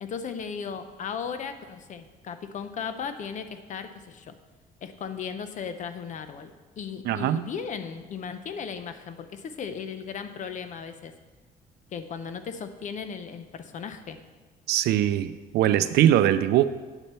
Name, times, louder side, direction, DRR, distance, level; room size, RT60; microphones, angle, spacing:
voice 1, 0.0-4.3 4.8-6.5 6.8-11.1 11.9-14.2, left 6 dB, 45° left, 9 dB, 0.7 m, -36 dB
voice 2, 7.0-7.5 14.7-16.6, right 12 dB, 75° right, 13 dB, 0.5 m, -21 dB
9.0 x 4.3 x 6.8 m, 1.3 s
cardioid pair, 110°, 17 cm